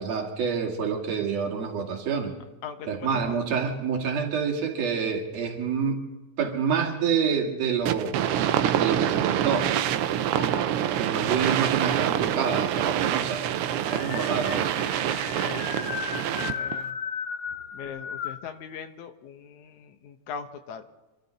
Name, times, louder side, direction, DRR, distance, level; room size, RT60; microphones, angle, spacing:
voice 1, 0.0-2.3 2.9-6.0 6.4-8.2 8.7-9.7 11.0-13.5 13.8-14.7, right 6 dB, 65° right, 0 dB, 3.3 m, -27 dB
voice 2, 2.6-3.4 15.4-17.0 17.7-20.8, left 7 dB, 80° left, 6 dB, 2.3 m, -41 dB
sound 1, 7.9-16.8, right 10 dB, 80° right, 1.2 m, -26 dB
sound 2, 8.5-9.8 10.3-11.0 12.0-12.1 12.3-12.4 12.8-18.5, left 6 dB, 55° left, 1.2 m, -36 dB
27.0 x 12.5 x 4.0 m, 1.1 s
omnidirectional pair, 3.3 m